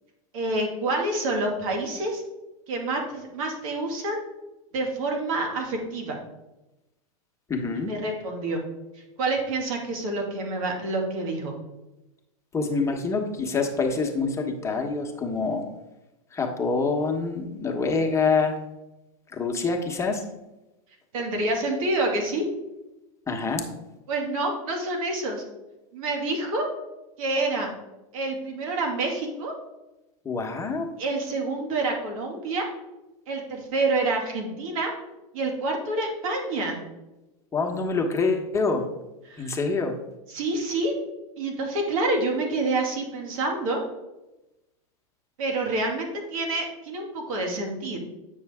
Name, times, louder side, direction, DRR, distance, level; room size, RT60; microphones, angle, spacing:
voice 1, 0.3-2.2 2.7-4.2 4.7-6.2 7.9-8.6 9.2-11.5 21.1-22.4 24.1-25.4 25.9-26.7 27.2-27.7 28.1-29.5 31.0-32.7 33.3-34.9 35.3-36.8 39.3-39.6 40.3-40.9 41.4-43.8 45.4-48.0, right 2 dB, 70° right, 1 dB, 2.2 m, -27 dB
voice 2, 7.5-7.9 12.5-15.6 16.3-18.6 19.3-20.2 23.3-23.6 30.2-30.9 37.5-38.8 39.4-39.9, left 4 dB, 15° left, 2 dB, 1.2 m, -26 dB
8.8 x 6.1 x 3.6 m, 0.99 s
hypercardioid pair, 125°, 19 cm